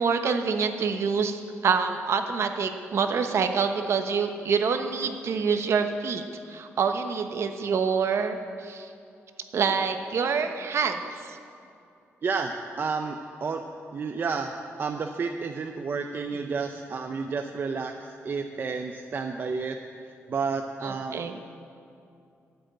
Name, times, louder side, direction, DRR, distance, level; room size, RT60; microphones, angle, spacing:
voice 1, 0.0-6.2 6.5-8.9 9.5-11.4 16.3-16.5 20.8-21.4, right 5 dB, 60° right, 7 dB, 1.1 m, -26 dB
voice 2, 12.2-13.6 13.9-14.5 14.8-19.8 20.3-21.2, right 5 dB, 45° right, 4 dB, 0.7 m, -31 dB
13.0 x 8.1 x 9.1 m, 2.6 s
cardioid pair, 125°, 5 cm